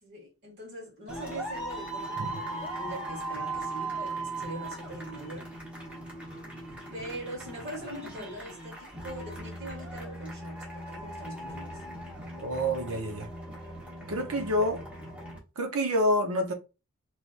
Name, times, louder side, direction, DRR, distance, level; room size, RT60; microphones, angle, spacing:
voice 1, 0.0-5.5 6.9-11.8, right 1 dB, 50° right, 2.1 m, -42 dB
sound 1, 1.1-15.4, right 2 dB, 5° right, 1.2 m, -39 dB
voice 2, 12.4-13.3 14.1-14.8 15.6-16.5, equal, 80° right, 0.8 m, -27 dB
3.3 x 3.2 x 2.5 m
head